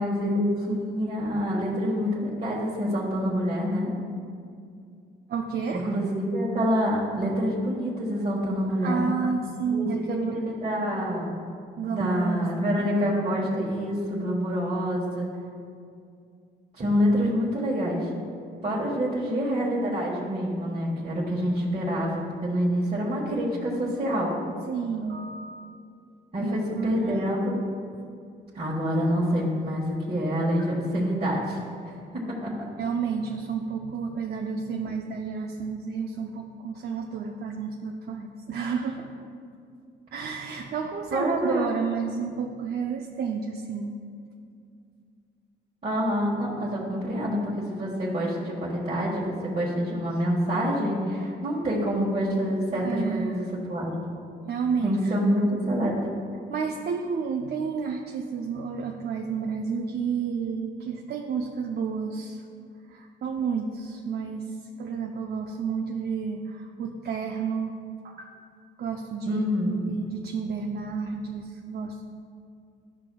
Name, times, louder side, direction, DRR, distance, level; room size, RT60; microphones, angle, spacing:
voice 1, 0.0-3.9 5.7-9.0 9.7-11.3 11.9-15.3 16.7-18.1 18.6-24.4 26.3-27.6 28.5-31.6 32.1-32.7 41.1-41.7 45.8-53.9 54.8-55.9 69.2-69.8, equal, 35° right, -7 dB, 1.4 m, -27 dB
voice 2, 5.3-5.9 8.8-10.3 11.8-12.7 24.7-25.7 26.4-27.3 30.6-30.7 32.8-39.1 40.1-43.9 52.8-53.5 54.5-55.2 56.5-62.4 62.9-64.5 64.8-67.8 68.0-68.3 68.8-69.4 69.8-72.0, right 6 dB, 55° right, 2 dB, 0.5 m, -31 dB
12.0 x 5.8 x 2.3 m, 2.3 s
cardioid pair, 90°, 20 cm